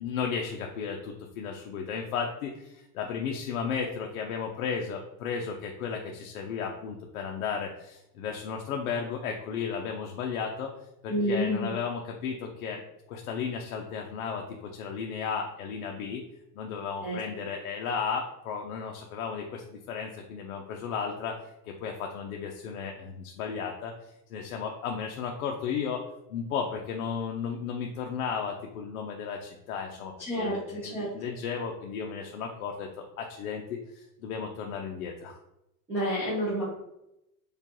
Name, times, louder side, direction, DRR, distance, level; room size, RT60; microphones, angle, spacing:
voice 1, 0.0-10.7 11.0-12.8 13.1-16.2 16.5-23.9 24.3-26.0 26.3-35.4, left 6 dB, 65° left, 1 dB, 0.6 m, -34 dB
voice 2, 11.1-11.7 17.0-17.2 30.2-31.1 35.9-36.6, equal, 5° right, -11 dB, 0.4 m, -29 dB
4.9 x 2.3 x 2.9 m, 0.86 s
supercardioid pair, 160°, 47 cm